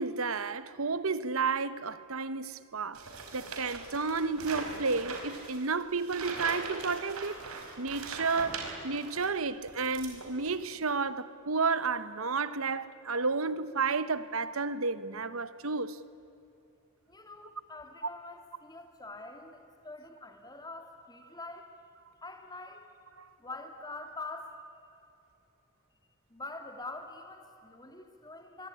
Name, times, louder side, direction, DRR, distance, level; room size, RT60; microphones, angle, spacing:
voice 1, 0.0-3.1 3.3-7.4 7.8-16.0 23.2-23.3, right 4 dB, 75° right, 1.2 m, -32 dB
sound 1, 2.9-9.3 9.7-10.6, right 4 dB, 90° right, 4.8 m, -41 dB
voice 2, 17.1-21.7 22.2-22.9 23.4-24.6 26.3-28.7, left 2 dB, 20° left, 2.8 m, -45 dB
25.5 x 22.5 x 9.9 m
head